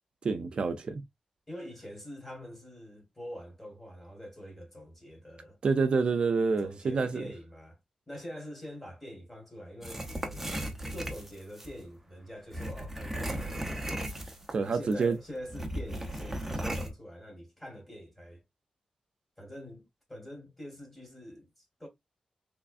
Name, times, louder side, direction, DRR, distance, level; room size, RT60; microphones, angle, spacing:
voice 1, 0.2-1.0 5.6-7.2 14.5-15.2, right 4 dB, 50° right, 0.5 m, -27 dB
voice 2, 1.5-5.6 6.6-7.8 8.1-10.6 10.9-14.0 14.6-18.4 19.4-21.9, equal, 10° left, 1.6 m, -45 dB
sound 1, 9.8-11.7 12.5-14.6 14.9-15.0 15.5-16.9, right 1 dB, 10° right, 0.7 m, -36 dB
3.5 x 3.3 x 2.4 m
wide cardioid pair, 170°, 2 cm